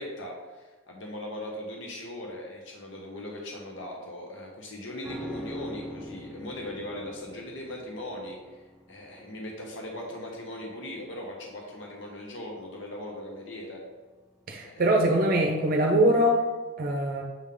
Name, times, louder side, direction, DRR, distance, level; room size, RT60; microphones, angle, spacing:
voice 1, 0.0-8.6 8.9-13.8 14.6-14.9, left 1 dB, 70° left, 0 dB, 1.0 m, -39 dB
sound 1, 5.0-14.4 14.7-14.8, equal, ahead, 1.2 m, -44 dB
voice 2, 14.5-16.4 16.8-17.2, right 1 dB, 50° right, 2 dB, 0.6 m, -23 dB
7.1 x 3.6 x 3.7 m, 1.3 s
head